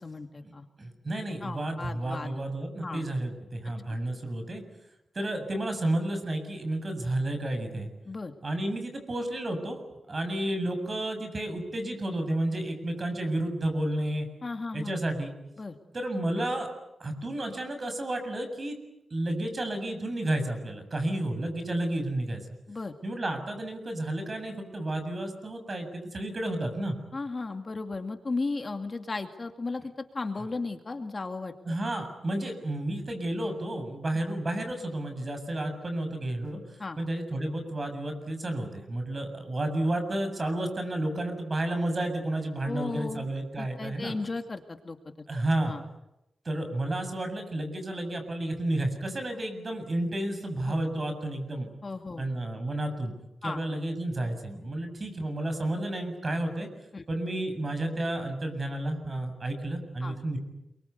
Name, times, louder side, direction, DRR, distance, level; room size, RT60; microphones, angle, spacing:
voice 1, 0.0-0.7 1.4-2.4 2.8-3.0 3.9-4.0 8.1-8.3 14.4-15.0 15.6-15.8 22.7-22.9 27.1-31.5 36.8-37.0 42.6-43.3 43.6-45.0 45.6-45.8 50.7-50.8 51.8-52.3 53.4-53.6 56.9-57.0 60.0-60.2, left 3 dB, 40° left, 6 dB, 2.4 m, -35 dB
voice 2, 0.8-4.6 5.1-7.9 8.4-9.8 10.1-14.3 14.7-15.3 15.9-16.7 17.0-18.8 19.1-22.4 23.0-27.0 31.7-36.6 37.0-44.1 45.3-45.8 46.5-51.7 52.2-53.1 53.4-56.7 57.1-60.4, right 1 dB, 40° right, 7 dB, 7.3 m, -31 dB
29.5 x 23.5 x 8.3 m, 0.90 s
cardioid pair, 80°, 0 cm